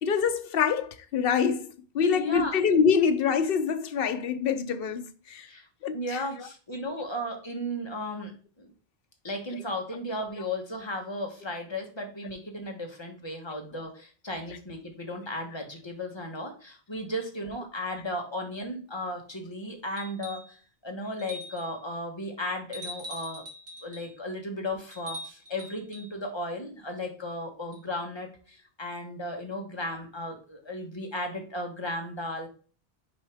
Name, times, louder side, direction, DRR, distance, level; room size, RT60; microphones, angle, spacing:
voice 1, 0.0-5.5 5.8-6.2, left 6 dB, 65° left, 0.9 m, -25 dB
voice 2, 2.1-2.5 5.4-8.3 8.6-8.7 9.2-20.6 20.8-23.4 23.8-32.5, left 1 dB, 25° left, 1.3 m, -35 dB
sound 1, 20.0-20.5 21.2-21.8 22.7-24.1 24.9-26.1 27.7-27.8, left 1 dB, 55° right, 1.8 m, -42 dB
6.9 x 4.5 x 3.4 m
omnidirectional pair, 1.1 m